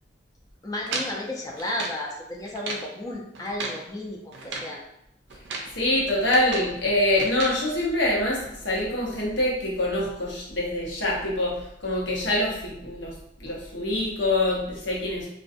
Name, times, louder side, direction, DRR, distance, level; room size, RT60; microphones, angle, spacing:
voice 1, 0.6-4.8, left 1 dB, 20° left, -1 dB, 0.4 m, -33 dB
sound 1, 0.9-2.0 2.4-2.9 3.3-3.8 4.3-4.7 5.3-5.7 6.1-6.8 7.2-7.6, right 3 dB, 70° right, 0.4 m, -34 dB
voice 2, 5.7-13.1 13.4-15.3, left 1 dB, 75° left, -3 dB, 0.8 m, -25 dB
2.4 x 2.2 x 2.5 m, 0.80 s
head